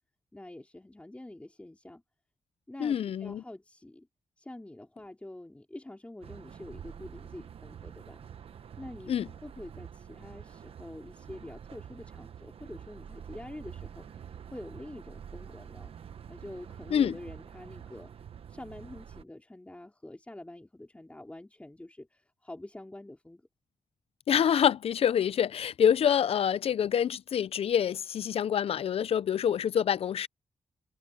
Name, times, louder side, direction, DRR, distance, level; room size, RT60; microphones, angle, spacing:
voice 1, 0.3-2.0 2.7-4.1 4.4-8.2 8.8-15.9 16.3-18.1 18.5-23.4, left 1 dB, 10° left, 4.0 m, -46 dB
voice 2, 2.8-3.4 9.1-9.3 16.9-17.1 24.3-30.3, left 8 dB, 70° left, 0.5 m, -26 dB
sound 1, 6.2-19.2, right 8 dB, 65° right, 1.0 m, -47 dB
wide cardioid pair, 115°, 10 cm